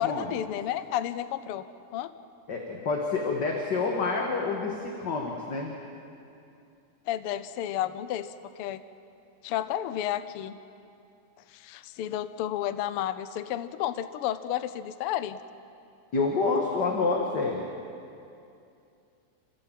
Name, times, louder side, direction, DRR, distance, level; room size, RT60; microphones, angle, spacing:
voice 1, 0.0-1.6 1.9-2.1 7.1-8.8 9.4-10.6 11.5-15.4, left 11 dB, 85° left, 13 dB, 1.2 m, -31 dB
voice 2, 2.5-5.7 16.1-17.7, left 4 dB, 40° left, 0 dB, 1.8 m, -28 dB
28.5 x 16.0 x 7.6 m, 2.6 s
omnidirectional pair, 3.5 m